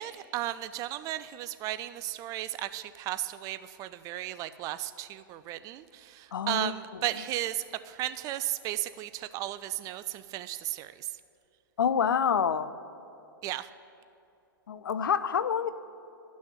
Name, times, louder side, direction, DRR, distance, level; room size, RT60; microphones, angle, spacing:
voice 1, 0.0-11.1 13.4-13.7, right 14 dB, 30° right, 13 dB, 0.4 m, -35 dB
voice 2, 6.3-6.7 11.8-12.7 14.7-15.7, left 7 dB, 70° left, 14 dB, 0.5 m, -27 dB
11.5 x 6.2 x 8.3 m, 2.8 s
figure-of-eight pair, 105°, 12 cm